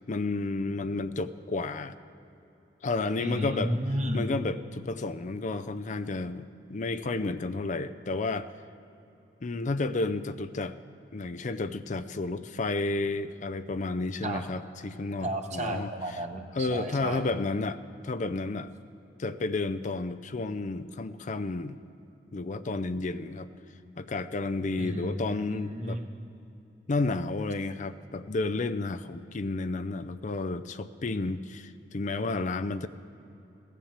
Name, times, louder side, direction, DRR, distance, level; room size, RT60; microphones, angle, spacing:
voice 1, 0.1-2.0 2.8-3.8 4.1-8.5 9.4-10.8 11.1-15.9 16.6-18.7 19.2-21.8 22.3-23.5 24.0-26.0 26.9-32.9, left 3 dB, 45° left, 12 dB, 0.5 m, -31 dB
voice 2, 3.2-4.3 14.2-14.4 15.2-17.2 24.8-26.1, right 1 dB, 40° right, 3 dB, 1.2 m, -33 dB
16.5 x 10.0 x 7.3 m, 2.9 s
head